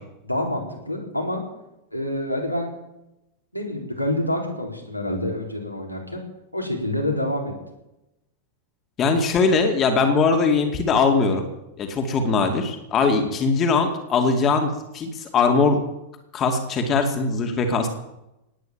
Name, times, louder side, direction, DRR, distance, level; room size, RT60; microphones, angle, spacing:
voice 1, 0.2-1.4 1.9-2.7 3.5-6.2 6.5-7.5, left 1 dB, 90° left, 0 dB, 4.1 m, -27 dB
voice 2, 9.0-11.4 11.8-15.8 16.3-17.9, left 4 dB, 30° left, 5 dB, 2.5 m, -21 dB
18.5 x 9.5 x 7.5 m, 0.89 s
figure-of-eight pair, 90°, 0 cm